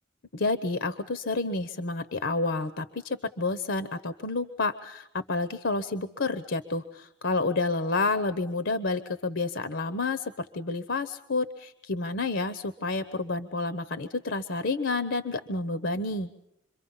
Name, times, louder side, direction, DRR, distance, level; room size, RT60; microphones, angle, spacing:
voice 1, 0.3-16.3, left 3 dB, 65° left, 11 dB, 0.9 m, -29 dB
27.5 x 23.5 x 5.6 m, 0.83 s
head